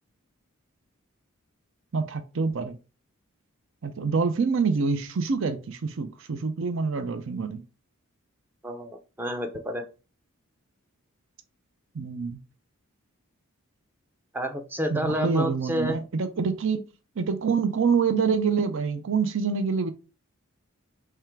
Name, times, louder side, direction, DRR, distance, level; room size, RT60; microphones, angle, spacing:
voice 1, 1.9-2.8 3.8-7.6 11.9-12.4 14.9-16.9 17.2-19.9, right 5 dB, 60° right, 0.6 m, -26 dB
voice 2, 8.6-9.9 14.3-16.0, equal, 10° right, 0.6 m, -29 dB
3.6 x 3.3 x 4.4 m
head